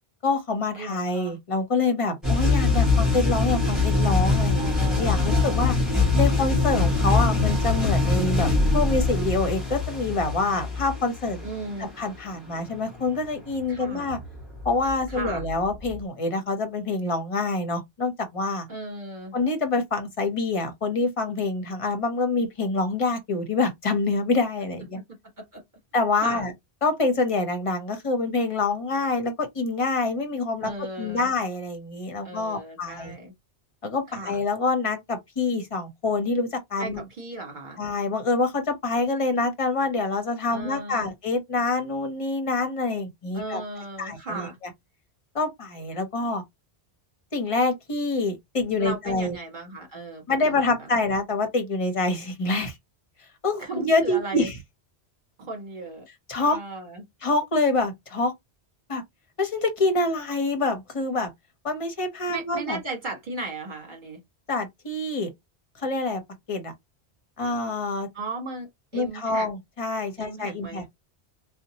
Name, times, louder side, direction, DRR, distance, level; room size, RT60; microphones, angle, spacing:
voice 1, 0.2-5.7 6.2-11.4 12.0-14.2 14.6-18.7 19.3-25.0 25.9-26.5 26.8-30.7 31.0-33.1 33.8-37.0 37.8-43.6 44.0-44.5 45.3-46.4 47.3-49.4 50.3-52.7 53.4-54.5 56.3-56.6 57.2-58.3 58.9-59.0 59.4-61.3 61.6-62.8 64.5-65.3 65.8-66.2 66.5-66.7 67.4-68.1 68.9-70.8, left 3 dB, 35° left, 0.7 m, -26 dB
voice 2, 0.7-1.4 4.6-5.8 11.4-11.9 13.7-14.1 15.1-15.5 18.7-19.3 24.9-25.0 25.4-25.6 26.1-26.5 30.6-31.3 32.2-33.3 34.1-34.4 36.8-37.8 40.5-41.1 43.3-44.6 48.8-51.1 53.6-54.5 55.4-56.1 56.4-57.0 62.3-64.2 68.1-69.5 70.2-70.9, right 2 dB, 45° right, 1.4 m, -36 dB
sound 1, 2.2-16.0, left 3 dB, ahead, 1.4 m, -24 dB
2.7 x 2.1 x 2.8 m
omnidirectional pair, 1.1 m